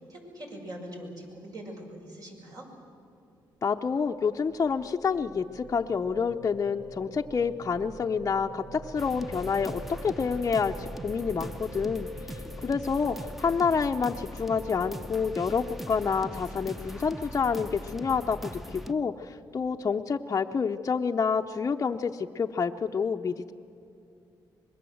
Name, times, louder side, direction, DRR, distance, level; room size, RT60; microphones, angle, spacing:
voice 1, 0.1-2.6, right 1 dB, 50° right, 0 dB, 6.4 m, -42 dB
voice 2, 3.6-23.5, left 5 dB, 35° left, 2 dB, 0.7 m, -28 dB
sound 1, 3.8-16.0, right 2 dB, 85° right, 1.8 m, -46 dB
sound 2, 9.0-18.9, equal, ahead, 1.0 m, -41 dB
25.0 x 21.5 x 7.9 m, 2.6 s
cardioid pair, 95°, 8 cm